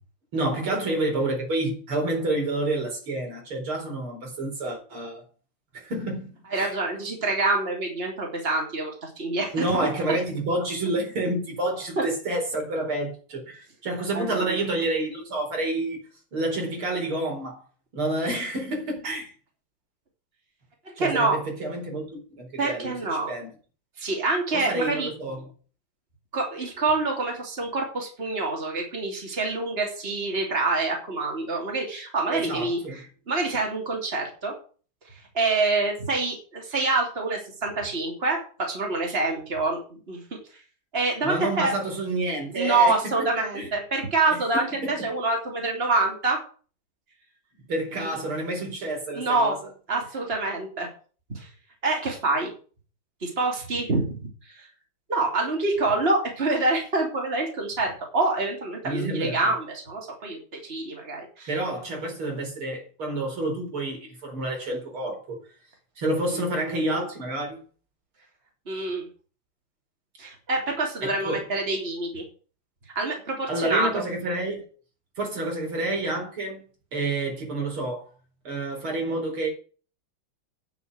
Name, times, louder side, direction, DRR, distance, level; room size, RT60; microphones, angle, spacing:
voice 1, 0.3-5.2 5.7-6.7 9.5-16.0 16.3-17.6 17.9-19.3 21.0-22.9 23.3-23.5 24.5-25.4 32.3-33.0 41.2-43.3 43.5-43.7 44.3-44.4 44.8-45.1 47.7-49.5 58.8-59.4 61.5-65.4 66.0-67.6 71.0-71.4 73.5-74.6 75.2-76.6 76.9-78.1 78.5-79.5, right 2 dB, 85° right, 5.5 m, -29 dB
voice 2, 6.5-10.2 12.0-12.1 14.1-14.6 21.0-21.4 22.6-23.3 24.0-25.1 26.3-34.5 35.0-40.2 40.5-40.6 40.9-41.7 42.5-46.4 48.0-48.2 49.1-49.6 49.9-50.9 51.3-51.5 51.8-52.5 53.2-54.7 55.1-61.5 68.7-69.1 70.2-72.2 72.9-74.0, right 3 dB, 25° right, 3.3 m, -26 dB
10.0 x 6.9 x 8.0 m
omnidirectional pair, 2.3 m